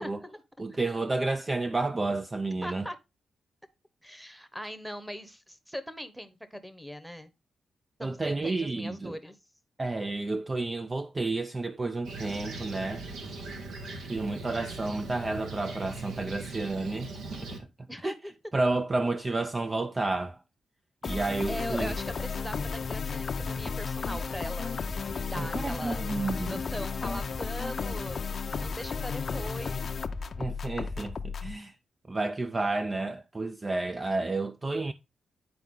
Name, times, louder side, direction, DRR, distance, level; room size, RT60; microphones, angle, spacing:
voice 1, 0.0-0.4 0.7-0.8 2.6-3.0 4.0-7.3 8.0-9.4 17.9-18.3 21.5-24.7 25.0-28.2 28.6-29.9, equal, ahead, 1.0 m, -40 dB
voice 2, 0.6-2.9 8.0-9.1 9.8-13.0 14.1-17.1 17.4-17.5 18.0-18.1 18.5-20.4 21.0-21.9 25.4-26.6 30.4-31.8 32.1-34.9, right 2 dB, 25° right, 0.5 m, -31 dB
Fixed-wing aircraft airplane, 12.0-17.6, right 3 dB, 85° right, 1.6 m, -40 dB
sound 1, 21.0-31.5, left 5 dB, 50° left, 0.7 m, -33 dB
9.6 x 4.5 x 3.7 m
cardioid pair, 95°, 0 cm